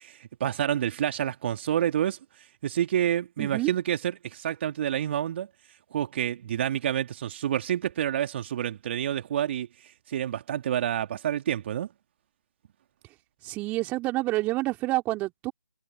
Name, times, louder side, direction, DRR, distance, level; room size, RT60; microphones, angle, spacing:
voice 1, 0.0-2.2 2.6-5.5 5.9-9.7 10.1-11.9, right 10 dB, 35° right, 2.6 m, -28 dB
voice 2, 3.4-3.7 13.4-15.5, right 19 dB, 15° right, 3.6 m, -28 dB
figure-of-eight pair, 150°, 11 cm